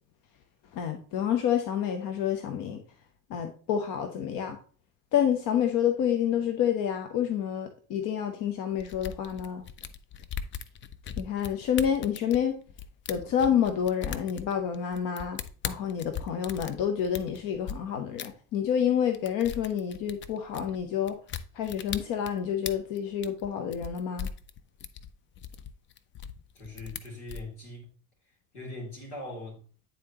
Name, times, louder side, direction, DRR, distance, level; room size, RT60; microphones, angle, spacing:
voice 1, 0.7-2.8 3.3-4.6 5.1-9.6 11.2-12.6 13.1-15.4 15.6-21.2 21.5-24.3, left 9 dB, 45° left, 0.8 m, -28 dB
sound 1, 8.8-17.7 18.2-18.3 18.7-18.9 19.1-27.4, left 8 dB, 25° left, 0.4 m, -39 dB
voice 2, 26.5-27.9 28.5-29.6, left 2 dB, 75° left, 2.8 m, -41 dB
9.4 x 3.9 x 2.8 m
figure-of-eight pair, 65°, 44 cm